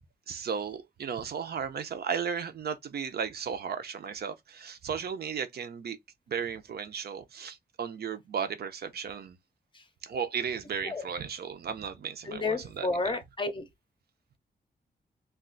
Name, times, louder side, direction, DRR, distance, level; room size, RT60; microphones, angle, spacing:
voice 1, 0.3-6.0 6.3-9.4 10.0-13.2, right 7 dB, 65° right, 0.5 m, -35 dB
voice 2, 12.3-13.6, left 3 dB, 30° left, 0.6 m, -31 dB
2.4 x 2.2 x 3.7 m
wide cardioid pair, 155°, 18 cm